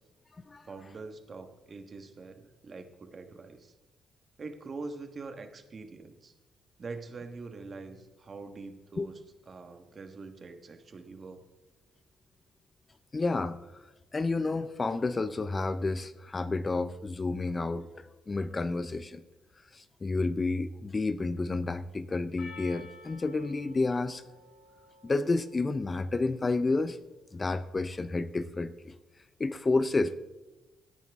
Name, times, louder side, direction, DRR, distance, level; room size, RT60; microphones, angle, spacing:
voice 1, 0.6-3.7 4.4-6.3 6.8-9.2 9.5-11.5, right 3 dB, 40° right, 7 dB, 1.2 m, -44 dB
voice 2, 13.1-13.6 14.1-19.2 19.7-24.2 25.0-27.0 27.3-28.9 29.4-30.2, left 3 dB, 30° left, 14 dB, 0.5 m, -30 dB
Percussion, 22.4-27.0, left 3 dB, 65° left, 1.6 m, -53 dB
16.0 x 8.9 x 3.5 m, 1.1 s
cardioid pair, 90°, 0 cm